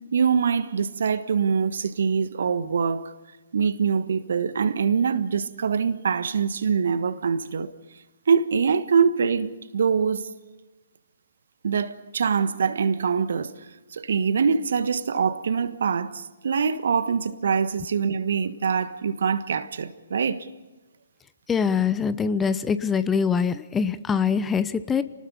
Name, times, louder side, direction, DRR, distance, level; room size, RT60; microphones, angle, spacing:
voice 1, 0.1-3.1 3.5-7.7 8.3-10.3 11.6-13.5 13.9-20.5, right 6 dB, 60° right, 1.4 m, -24 dB
voice 2, 21.5-25.0, left 6 dB, 10° left, 0.9 m, -23 dB
29.5 x 19.5 x 5.5 m
figure-of-eight pair, 130°, 0 cm